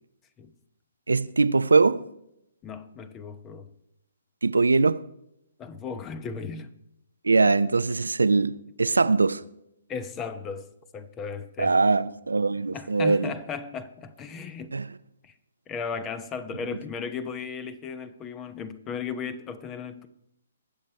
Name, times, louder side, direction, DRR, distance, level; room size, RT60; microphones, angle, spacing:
voice 1, 1.1-2.1 4.4-5.0 7.2-9.4 11.6-13.3 14.7-14.9, right 3 dB, 80° right, 0.6 m, -22 dB
voice 2, 2.6-3.7 5.6-6.7 9.9-11.7 12.7-14.7 15.2-15.3 15.7-20.1, left 5 dB, 20° left, 0.9 m, -36 dB
21.5 x 7.4 x 4.5 m
figure-of-eight pair, 130°, 0 cm